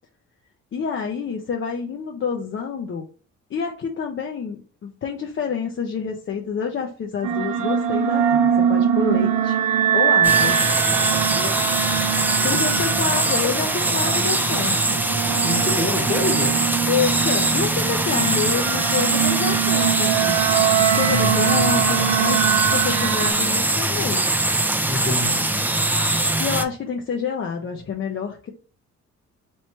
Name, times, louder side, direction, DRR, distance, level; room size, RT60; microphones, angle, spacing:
voice 1, 0.7-3.0 3.5-9.6 9.9-10.6 12.4-15.0 16.9-20.4 20.9-24.4 26.2-28.5, left 6 dB, 40° left, 0.6 m, -28 dB
sound 1, 7.2-23.3, right 9 dB, 90° right, 0.5 m, -23 dB
sound 2, 10.2-26.6, right 2 dB, 5° right, 0.4 m, -22 dB
voice 2, 12.4-12.8 15.4-16.6 21.1-22.1 24.9-25.6, left 2 dB, 25° left, 1.0 m, -28 dB
3.1 x 3.1 x 4.2 m
cardioid pair, 90°, 30 cm